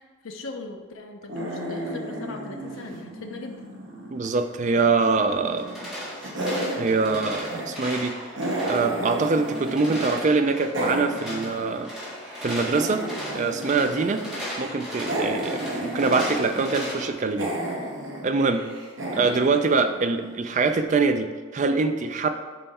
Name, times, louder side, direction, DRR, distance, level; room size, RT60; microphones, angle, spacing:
voice 1, 0.2-3.6 19.1-19.5, left 3 dB, 70° left, 3 dB, 0.6 m, -39 dB
sound 1, 1.3-4.4 4.7-5.9 6.2-10.2 10.4-20.5, right 1 dB, 60° right, 1.1 m, -33 dB
voice 2, 4.1-5.7 6.8-8.1 8.6-11.9 12.4-13.0 13.3-14.2 14.6-17.5 18.2-18.6 19.1-21.3 21.5-22.3, right 4 dB, 35° right, 8 dB, 0.3 m, -24 dB
sound 2, 5.5-17.1, equal, ahead, 1.6 m, -37 dB
5.6 x 4.4 x 4.2 m, 1.5 s
head